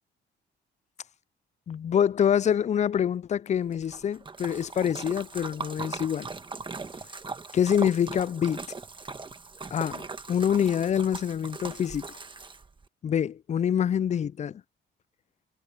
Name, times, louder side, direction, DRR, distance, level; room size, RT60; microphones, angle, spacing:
voice 1, 1.7-6.3 7.5-8.6 9.7-12.2 13.0-14.6, left 9 dB, 35° left, 0.4 m, -26 dB
Splash splatter, 3.7-12.8, right 4 dB, 25° right, 1.4 m, -40 dB
cardioid pair, 90°, 20 cm